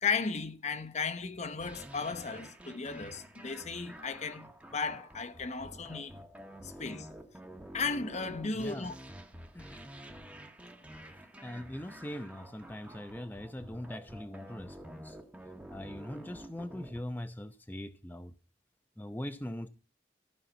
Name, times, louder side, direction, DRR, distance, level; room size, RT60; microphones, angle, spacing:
voice 1, 0.0-6.2 6.6-7.1 7.7-8.9, left 5 dB, 40° left, 0.9 m, -35 dB
sound 1, 1.6-17.0, right 1 dB, 5° right, 1.2 m, -49 dB
voice 2, 8.5-8.9 9.5-9.8 11.4-15.2 15.7-18.3 19.0-19.7, left 1 dB, 10° left, 0.6 m, -41 dB
14.0 x 5.6 x 9.2 m
head